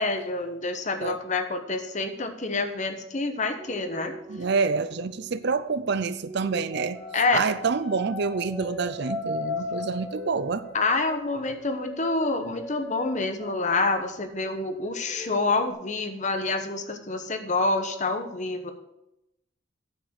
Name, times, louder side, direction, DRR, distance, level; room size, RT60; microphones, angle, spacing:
voice 1, 0.0-4.1 7.1-7.5 10.7-18.7, left 3 dB, 35° left, 8 dB, 1.0 m, -27 dB
sound 1, 3.6-5.6 6.2-14.0 14.3-15.7, left 2 dB, ahead, 1.5 m, -38 dB
voice 2, 4.3-7.0 7.3-10.7, right 4 dB, 55° right, 14 dB, 0.5 m, -27 dB
9.2 x 7.5 x 6.5 m, 0.85 s
head